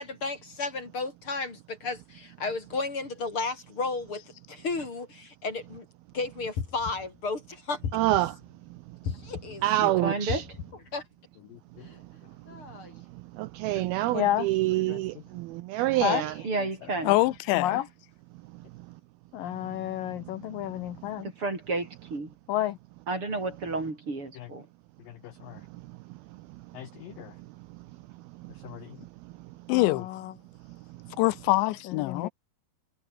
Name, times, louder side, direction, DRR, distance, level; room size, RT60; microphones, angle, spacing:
voice 1, 0.0-4.2 4.5-5.9 6.1-7.8 9.0-10.0 10.9-11.0 11.8-12.0 12.5-13.0 16.1-16.5, left 3 dB, 30° left, 4.2 m, -34 dB
sound 1, 6.6-7.2 7.8-8.5 9.1-9.7 10.3-10.9, left 7 dB, 55° left, 4.7 m, -35 dB
voice 2, 7.9-8.4 9.6-10.5 13.4-16.4, right 16 dB, 85° right, 2.2 m, -26 dB
voice 3, 9.8-10.4 16.4-17.2 21.1-22.3 23.1-24.7, right 3 dB, 30° right, 6.1 m, -31 dB
voice 4, 14.1-14.4 16.0-16.2 17.5-17.8 19.3-21.3 22.5-22.8 26.8-27.3 28.6-28.8 29.7-29.9 32.1-32.3, left 13 dB, 70° left, 2.2 m, -30 dB
voice 5, 17.0-17.8 29.7-30.1 31.2-32.3, left 19 dB, 90° left, 3.1 m, -24 dB
omnidirectional pair, 5.1 m